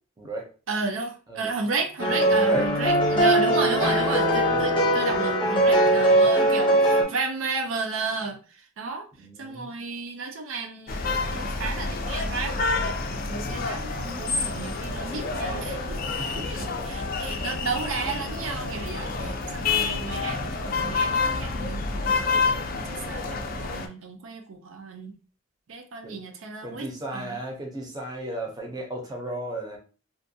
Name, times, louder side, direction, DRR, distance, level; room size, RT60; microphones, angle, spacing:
voice 1, 0.2-0.5 1.3-1.5 2.3-2.7 4.0-4.7 9.1-9.7 16.2-16.5 17.3-17.6 26.0-26.2 26.6-29.8, right 1 dB, 20° right, 0 dB, 0.6 m, -35 dB
voice 2, 0.7-8.4 8.8-9.1 9.4-12.5 12.8-25.1 25.7-26.9 27.1-27.4, right 4 dB, 75° right, 3 dB, 0.5 m, -33 dB
sound 1, 2.0-7.0, right 1 dB, 25° left, 0.7 m, -20 dB
sound 2, 10.9-23.9, left 4 dB, 45° left, 0.4 m, -28 dB
2.5 x 2.2 x 2.6 m, 0.36 s
head